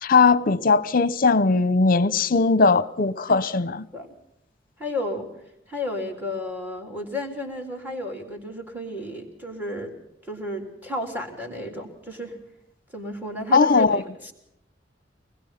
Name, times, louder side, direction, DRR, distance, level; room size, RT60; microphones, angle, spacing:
voice 1, 0.0-3.9 13.5-14.0, left 4 dB, 50° left, 0.8 m, -19 dB
voice 2, 4.8-5.3 5.7-9.9 10.3-12.4 12.9-14.3, left 1 dB, 10° right, 3.5 m, -32 dB
25.5 x 20.5 x 5.8 m
head